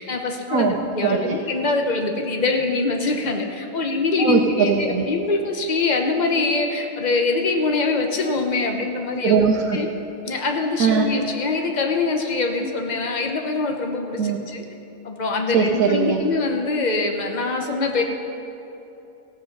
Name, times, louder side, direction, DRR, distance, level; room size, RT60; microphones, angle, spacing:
voice 1, 0.0-9.4 9.7-9.9 10.2-14.6 15.0-18.0, left 3 dB, 35° left, 3 dB, 1.0 m, -24 dB
voice 2, 1.0-1.3 4.2-5.1 9.2-9.8 10.8-11.1 14.2-14.4 15.5-16.2, right 6 dB, 70° right, 1 dB, 1.2 m, -20 dB
16.0 x 7.8 x 5.4 m, 2.9 s
omnidirectional pair, 1.6 m